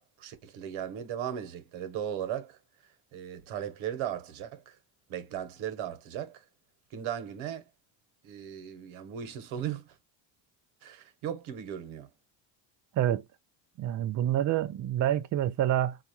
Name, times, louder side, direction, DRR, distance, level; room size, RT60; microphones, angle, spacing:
voice 1, 0.0-2.6 3.1-4.8 5.1-6.4 6.9-7.6 8.2-10.0 10.8-12.1, right 9 dB, 75° right, 1.1 m, -37 dB
voice 2, 13.8-16.0, right 12 dB, 40° right, 0.4 m, -27 dB
4.1 x 2.4 x 2.9 m
cardioid pair, 100°, 48 cm